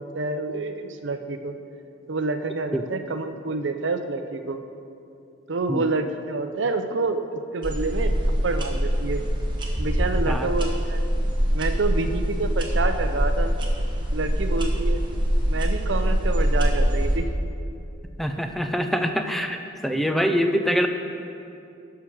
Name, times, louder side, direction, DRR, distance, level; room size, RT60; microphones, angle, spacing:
voice 1, 0.0-1.5 2.1-4.6 5.5-9.2 9.8-11.0 11.5-13.5 14.1-15.0 15.5-17.3, right 3 dB, 65° right, 8 dB, 0.6 m, -28 dB
sound 1, 7.6-17.2, equal, 25° right, 1.0 m, -24 dB
voice 2, 18.2-19.6 19.8-20.9, equal, ahead, 6 dB, 0.4 m, -24 dB
11.5 x 4.8 x 6.3 m, 2.6 s
head